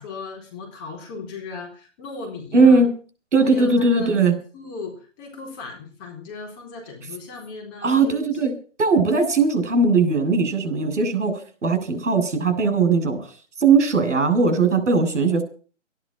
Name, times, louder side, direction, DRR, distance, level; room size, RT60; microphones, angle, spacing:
voice 1, 0.0-2.8 3.4-4.3 4.5-8.5, left 3 dB, 20° left, 0 dB, 4.0 m, -37 dB
voice 2, 2.5-2.9 3.3-4.3 7.8-8.5 8.8-13.2 13.6-15.4, right 4 dB, 70° right, 8 dB, 6.8 m, -19 dB
14.0 x 11.0 x 7.5 m, 0.39 s
hypercardioid pair, 170°, 37 cm